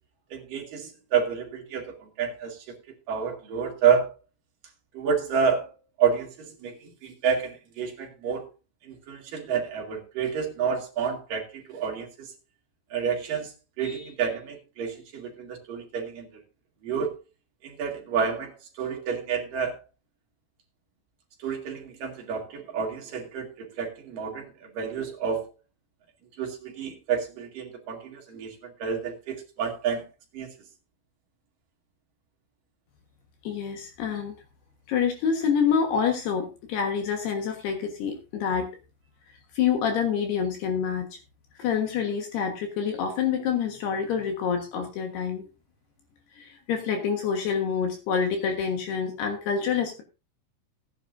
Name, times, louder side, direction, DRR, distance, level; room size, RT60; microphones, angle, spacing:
voice 1, 0.3-2.8 3.1-4.1 4.9-5.7 6.0-8.5 8.8-12.3 12.9-16.3 16.8-17.2 17.6-19.8 21.4-25.5 26.4-30.0 30.3-30.5, right 6 dB, 55° right, 3.3 m, -29 dB
voice 2, 33.4-34.3 34.9-38.7 39.5-41.2 41.6-45.4 46.3-50.0, left 7 dB, 70° left, 3.3 m, -27 dB
17.0 x 10.0 x 2.6 m
omnidirectional pair, 5.0 m